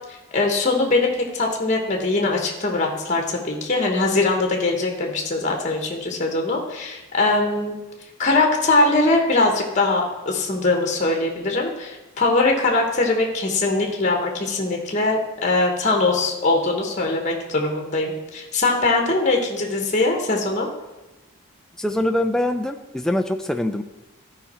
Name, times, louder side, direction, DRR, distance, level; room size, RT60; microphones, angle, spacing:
voice 1, 0.1-7.7 8.2-20.7, left 2 dB, 35° left, 2 dB, 1.1 m, -21 dB
voice 2, 21.8-23.8, left 1 dB, 5° left, 6 dB, 0.4 m, -23 dB
12.5 x 5.1 x 4.3 m, 1.1 s
head